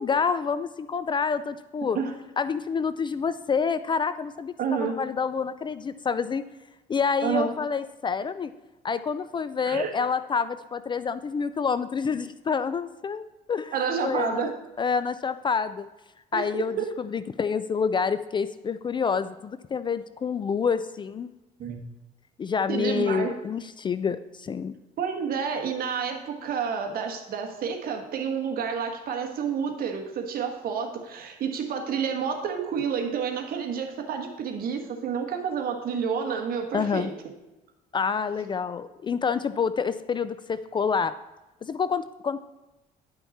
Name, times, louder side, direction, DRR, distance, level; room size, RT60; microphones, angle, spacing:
voice 1, 0.0-2.0 2.4-6.4 6.9-8.5 8.8-13.2 13.5-13.7 14.0-14.5 14.8-15.9 16.3-21.3 22.4-24.7 36.7-37.1 37.9-41.1 41.6-42.4, left 6 dB, 30° left, 13 dB, 0.3 m, -27 dB
voice 2, 4.6-5.0 7.2-7.5 9.6-9.9 13.7-14.5 16.3-16.9 21.6-21.8 22.7-23.3 25.0-37.1, right 6 dB, 60° right, 4 dB, 1.4 m, -29 dB
10.5 x 5.8 x 4.2 m, 1.0 s
cardioid pair, 110°, 17 cm